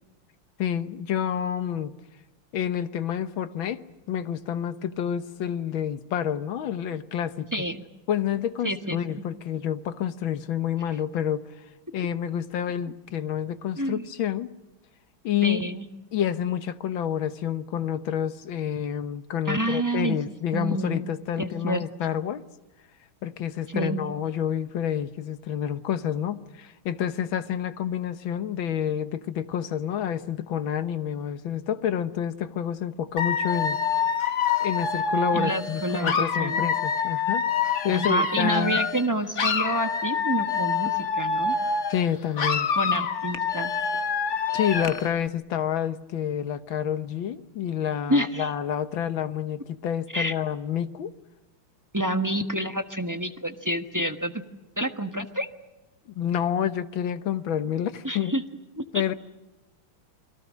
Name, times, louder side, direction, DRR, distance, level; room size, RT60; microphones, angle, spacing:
voice 1, 0.6-1.9 2.5-3.8 4.1-7.5 8.1-11.5 11.9-14.5 15.2-15.6 16.1-22.4 23.2-33.8 34.6-37.4 37.8-38.8 41.9-42.7 44.5-51.1 56.2-58.3 58.9-59.1, left 9 dB, 70° left, 12 dB, 1.8 m, -28 dB
voice 2, 7.5-7.8 8.6-9.0 13.8-14.0 15.4-15.9 19.5-20.2 20.5-21.1 21.4-21.8 23.7-24.1 35.3-36.7 37.9-41.5 42.8-43.7 48.1-48.5 50.1-50.3 51.9-54.4 54.8-55.5 58.0-58.4 58.8-59.1, right 1 dB, 15° right, 7 dB, 0.9 m, -28 dB
Dog / Alarm, 33.2-39.1 39.3-42.1 42.4-45.1, left 5 dB, 45° left, 1.2 m, -26 dB
29.5 x 22.5 x 6.3 m, 1.1 s
omnidirectional pair, 2.3 m